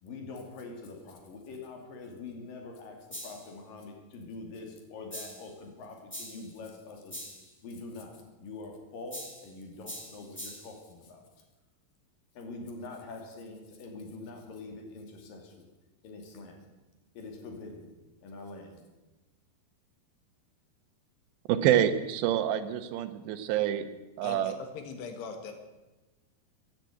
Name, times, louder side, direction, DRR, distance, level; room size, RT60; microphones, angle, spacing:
voice 1, 0.0-7.2 7.6-11.2 12.4-15.7 16.0-16.7 17.2-17.9 18.2-18.8, left 3 dB, 60° left, 3 dB, 3.9 m, -44 dB
sound 1, 3.1-3.5 5.1-5.5 6.1-6.5 7.1-7.5 9.1-9.5 9.8-10.8, equal, 5° left, 1.2 m, -43 dB
voice 2, 21.5-23.9 24.2-24.5, right 11 dB, 90° right, 11 dB, 3.2 m, -27 dB
voice 3, 24.2-25.5, left 5 dB, 85° left, 6 dB, 3.8 m, -40 dB
15.0 x 10.5 x 9.2 m, 1.1 s
omnidirectional pair, 4.8 m